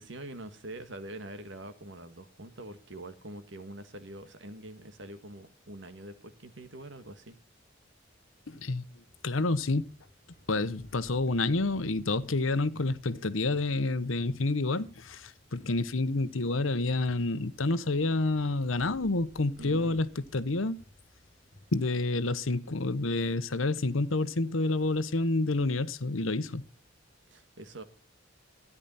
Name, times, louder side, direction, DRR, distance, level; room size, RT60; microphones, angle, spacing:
voice 1, 0.0-7.4 19.6-20.0 27.3-27.8, right 1 dB, 65° right, 1.7 m, -44 dB
voice 2, 8.5-9.8 10.5-20.8 21.7-26.7, left 2 dB, 90° left, 1.0 m, -29 dB
sound 1, 9.1-21.7, left 1 dB, 45° left, 5.5 m, -59 dB
14.0 x 10.0 x 4.2 m
head